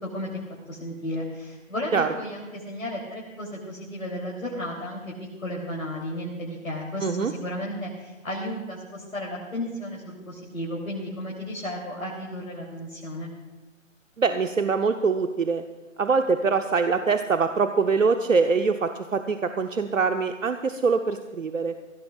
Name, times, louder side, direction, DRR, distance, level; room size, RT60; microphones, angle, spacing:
voice 1, 0.0-0.4 0.7-5.1 5.4-13.3, left 1 dB, 90° left, -4 dB, 3.5 m, -33 dB
voice 2, 7.0-7.3 14.2-15.6 16.0-21.7, right 5 dB, 75° right, 7 dB, 1.0 m, -23 dB
23.0 x 16.5 x 2.5 m, 1.1 s
figure-of-eight pair, 150°, 40 cm